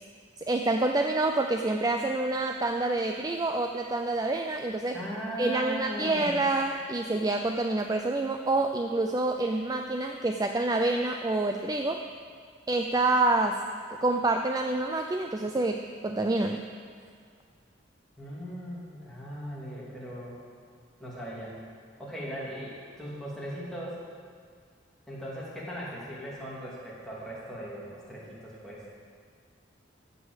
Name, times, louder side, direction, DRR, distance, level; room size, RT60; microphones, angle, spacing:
voice 1, 0.5-5.0 5.4-12.0 12.7-13.6 13.9-16.6, right 2 dB, 20° right, 4 dB, 0.4 m, -27 dB
voice 2, 4.9-6.4 18.2-20.3 21.0-21.5 22.0-24.0 25.1-28.8, equal, ahead, -7 dB, 2.7 m, -38 dB
14.0 x 5.5 x 8.0 m, 2.1 s
head